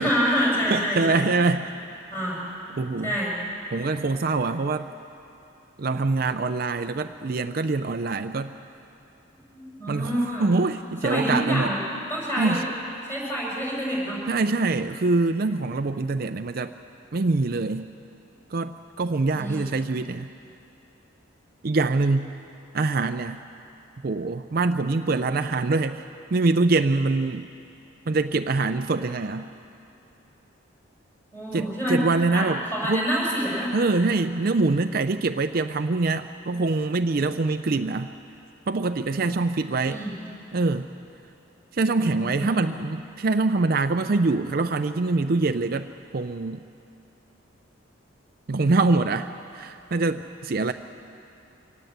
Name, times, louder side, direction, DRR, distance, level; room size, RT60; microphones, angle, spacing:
voice 1, 0.0-1.2 2.1-2.4 3.0-3.3 9.5-10.5 11.0-11.8 12.1-12.6 13.1-14.2 19.3-19.6 31.3-32.1 32.3-33.8 39.8-40.2 42.2-42.7, equal, 10° left, -4 dB, 6.2 m, -27 dB
voice 2, 0.7-1.7 2.8-3.2 3.7-4.9 5.8-8.5 9.9-11.7 12.4-12.6 14.3-16.7 17.1-17.9 18.5-20.3 21.6-22.3 22.7-23.4 24.0-26.0 26.3-27.5 28.1-29.5 31.5-32.6 32.9-33.1 33.7-38.1 38.7-40.0 40.5-40.9 41.7-46.6 48.5-50.7, right 3 dB, 45° right, 8 dB, 0.5 m, -24 dB
24.5 x 18.0 x 8.0 m, 2.8 s
head